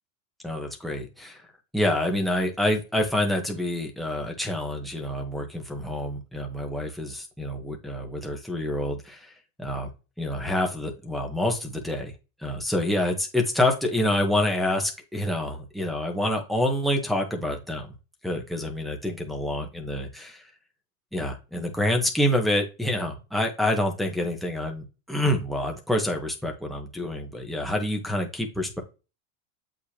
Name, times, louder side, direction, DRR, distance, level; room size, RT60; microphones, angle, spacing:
voice 1, 0.4-1.4 1.7-9.3 9.6-9.9 10.2-12.1 12.4-17.9 18.2-20.4 21.1-28.8, left 1 dB, ahead, 1 dB, 1.3 m, -27 dB
7.9 x 5.1 x 2.9 m, 0.30 s
supercardioid pair, 150°, 45 cm